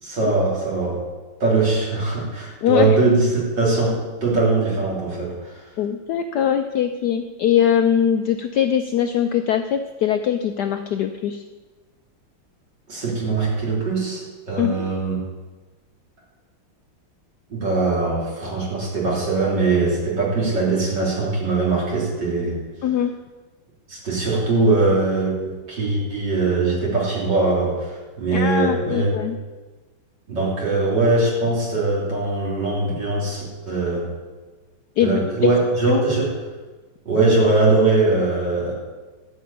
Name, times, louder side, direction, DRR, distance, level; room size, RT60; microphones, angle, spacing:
voice 1, 0.0-1.1 1.4-5.6 12.9-15.2 17.5-22.6 23.9-29.1 30.3-34.1 35.0-36.3 37.1-38.7, right 3 dB, 55° right, -4 dB, 3.8 m, -21 dB
voice 2, 2.6-3.0 5.8-11.4 14.6-14.8 22.8-23.1 28.3-29.4 35.0-35.5 35.9-36.0, left 9 dB, 75° left, 8 dB, 0.9 m, -21 dB
12.5 x 5.7 x 8.4 m, 1.3 s
omnidirectional pair, 2.3 m